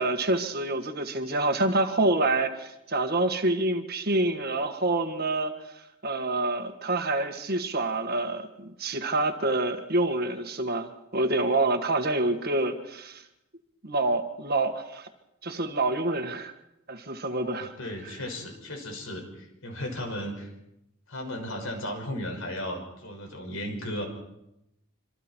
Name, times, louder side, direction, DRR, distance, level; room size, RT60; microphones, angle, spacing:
voice 1, 0.0-5.5 6.0-13.2 13.8-15.1 15.4-16.5 16.9-17.7, right 2 dB, 45° right, 6 dB, 1.8 m, -27 dB
voice 2, 17.4-20.5 21.1-24.0, left 1 dB, 70° left, 3 dB, 6.0 m, -35 dB
26.0 x 26.0 x 4.6 m, 0.86 s
head